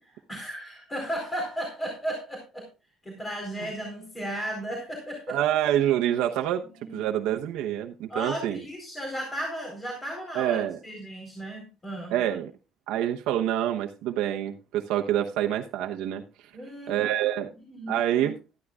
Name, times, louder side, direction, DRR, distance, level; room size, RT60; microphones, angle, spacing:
voice 1, 0.0-2.7 3.0-5.4 6.8-7.0 8.1-12.2 16.5-16.9 17.7-18.0, equal, 20° left, 1 dB, 4.1 m, -35 dB
voice 2, 5.3-6.6 6.9-8.6 10.3-10.8 12.1-12.5 12.9-16.2 16.9-17.5 17.9-18.4, right 11 dB, 90° right, 3 dB, 1.0 m, -26 dB
13.0 x 13.0 x 2.4 m, 0.29 s
cardioid pair, 115°, 0 cm